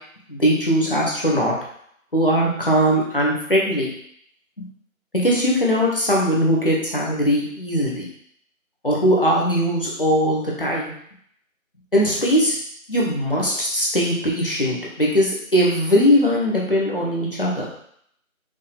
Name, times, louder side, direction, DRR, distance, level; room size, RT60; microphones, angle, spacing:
voice 1, 0.3-1.5 2.1-3.9 4.6-4.7 5.2-8.1 8.8-10.9 11.9-12.5 12.9-17.7, equal, 40° left, -4 dB, 1.0 m, -20 dB
5.4 x 2.4 x 3.4 m, 0.67 s
figure-of-eight pair, 170°, 42 cm